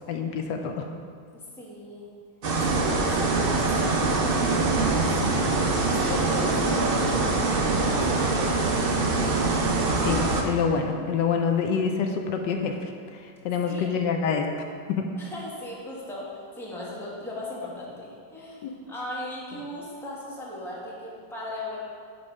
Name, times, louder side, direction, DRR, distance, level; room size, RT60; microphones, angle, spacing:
voice 1, 0.1-0.9 10.0-14.6 14.9-15.1 18.6-18.7, left 6 dB, 80° left, 4 dB, 1.3 m, -27 dB
voice 2, 1.3-2.1 2.6-5.5 6.0-8.8 13.6-14.0 15.1-21.8, left 1 dB, ahead, -6 dB, 1.2 m, -37 dB
sound 1, 2.4-10.4, right 3 dB, 65° right, 0.5 m, -24 dB
9.7 x 3.3 x 5.3 m, 2.1 s
omnidirectional pair, 1.9 m